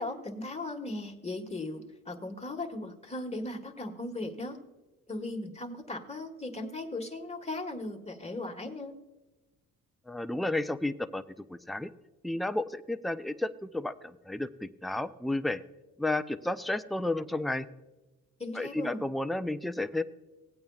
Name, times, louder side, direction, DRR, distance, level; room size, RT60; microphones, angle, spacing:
voice 1, 0.0-4.6 5.1-9.0 18.4-19.0, left 2 dB, 20° left, 4 dB, 1.4 m, -37 dB
voice 2, 10.1-11.2 11.5-11.9 12.2-15.6 16.0-17.7 18.5-20.0, left 2 dB, ahead, 9 dB, 0.4 m, -32 dB
17.5 x 8.8 x 2.3 m, 1.1 s
cardioid pair, 90°, 34 cm